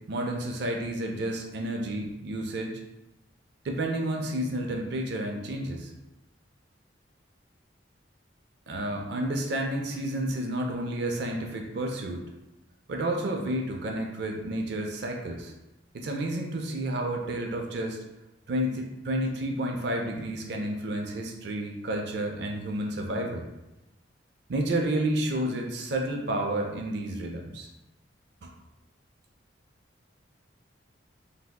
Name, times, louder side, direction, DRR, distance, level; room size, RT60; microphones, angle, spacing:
voice 1, 0.1-2.8 3.6-5.9 8.7-12.2 12.9-15.5 15.9-18.0 18.5-23.5 24.5-27.7 28.4-28.5, right 1 dB, 60° right, 1 dB, 0.4 m, -30 dB
3.3 x 2.6 x 2.3 m, 0.97 s
head